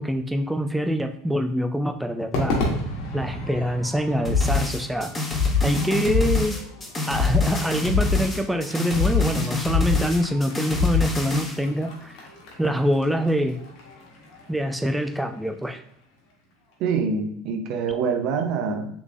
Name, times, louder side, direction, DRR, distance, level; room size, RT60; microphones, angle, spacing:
voice 1, 0.0-2.5 3.1-5.1 5.6-6.6 7.1-12.3 12.6-13.6 14.5-15.8, equal, 5° right, 5 dB, 0.4 m, -25 dB
Crowd / Fireworks, 2.3-16.7, left 1 dB, 60° left, 1.2 m, -36 dB
sound 1, 4.3-11.6, left 4 dB, 20° left, 1.2 m, -24 dB
voice 2, 16.8-18.9, right 5 dB, 55° right, 5 dB, 0.6 m, -25 dB
3.5 x 3.2 x 2.5 m, 0.70 s
hypercardioid pair, 75°, 0 cm